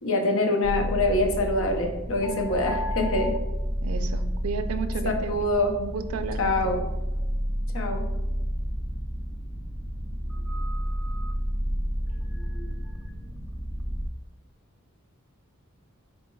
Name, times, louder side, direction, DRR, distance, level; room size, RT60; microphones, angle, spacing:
voice 1, 0.0-3.3 5.3-5.7 6.4-6.8 7.7-8.1, left 2 dB, 65° left, 3 dB, 0.6 m, -25 dB
sound 1, 0.6-14.1, equal, 5° left, 0.4 m, -30 dB
voice 2, 3.8-6.8, right 5 dB, 85° right, 9 dB, 0.4 m, -34 dB
4.2 x 2.2 x 4.4 m, 1.0 s
head